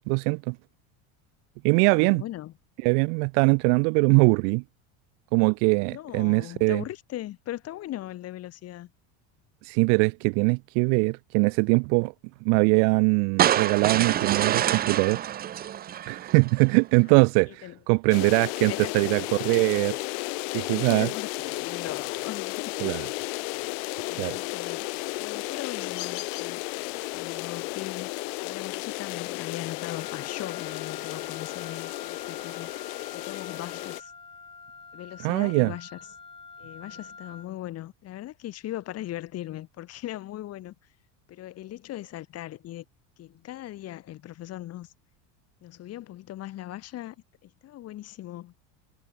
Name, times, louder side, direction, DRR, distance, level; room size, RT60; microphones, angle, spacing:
voice 1, 0.1-0.6 1.6-2.2 2.8-4.6 5.3-6.8 9.6-12.1 12.4-15.2 16.1-20.0 20.5-21.1 22.8-23.0 24.2-24.4 35.2-35.7, right 40 dB or more, 45° right, 0.5 m, -22 dB
voice 2, 1.8-2.5 5.9-8.9 17.1-17.2 17.6-17.8 18.6-18.9 20.5-22.9 23.6-24.8 25.2-28.1 28.4-32.7 33.1-34.1 34.9-36.0 36.6-40.7 41.3-42.8 43.2-44.9 45.6-47.2 47.4-48.5, left 14 dB, 35° left, 4.9 m, -39 dB
sound 1, 13.4-16.6, right 11 dB, 20° right, 0.9 m, -26 dB
sound 2, 18.1-34.0, left 32 dB, 60° left, 1.0 m, -34 dB
Wind instrument woodwind instrument, 29.8-37.5, left 4 dB, 10° left, 6.0 m, -46 dB
cardioid pair, 170°, 43 cm